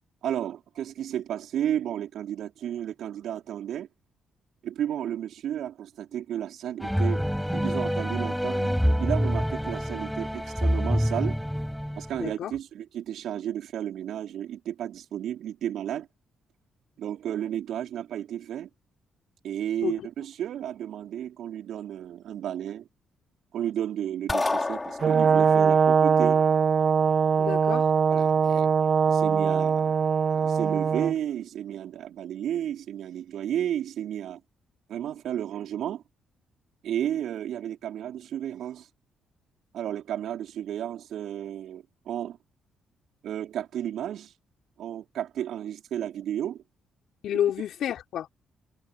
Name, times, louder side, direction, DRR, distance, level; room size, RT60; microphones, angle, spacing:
voice 1, 0.2-3.9 4.6-7.2 7.5-11.4 12.0-16.1 17.0-18.7 19.4-22.9 23.5-26.4 28.1-28.7 29.1-30.0 30.4-34.4 34.9-36.0 36.8-38.9 39.7-42.4 43.2-44.3 44.8-46.6, right 10 dB, 70° right, 4.9 m, -32 dB
sound 1, 6.8-12.3, equal, ahead, 6.4 m, -27 dB
voice 2, 12.2-12.5 19.8-20.1 27.4-27.9 47.2-48.3, left 10 dB, 70° left, 4.0 m, -29 dB
sound 2, 24.3-25.6, left 2 dB, 25° left, 5.1 m, -29 dB
Brass instrument, 25.0-31.1, right 6 dB, 50° right, 1.0 m, -22 dB
hypercardioid pair, 50°, 0 cm